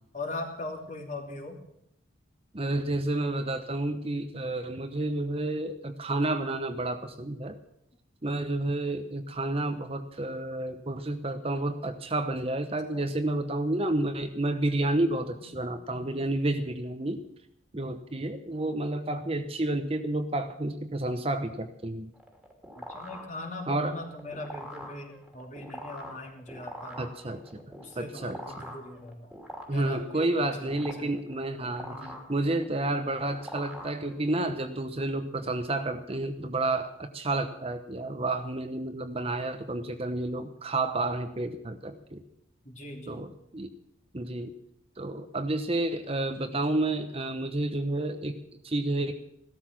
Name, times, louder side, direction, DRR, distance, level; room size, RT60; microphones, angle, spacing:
voice 1, 0.1-1.6 12.9-13.1 15.4-16.3 17.7-17.9 22.8-27.1 27.5-29.3 29.7-30.3 30.6-31.1 31.9-32.3 42.6-43.3, left 2 dB, 40° left, 2 dB, 2.8 m, -41 dB
voice 2, 2.5-7.6 8.2-17.2 17.7-22.1 23.7-24.0 27.0-27.6 28.0-28.6 29.7-32.0 32.3-42.2 43.1-43.3 43.5-43.7 44.1-44.5 45.0-49.1, right 2 dB, 30° right, 8 dB, 1.0 m, -30 dB
sound 1, 22.1-34.5, equal, 5° right, 2.8 m, -44 dB
16.0 x 13.0 x 6.1 m, 0.77 s
head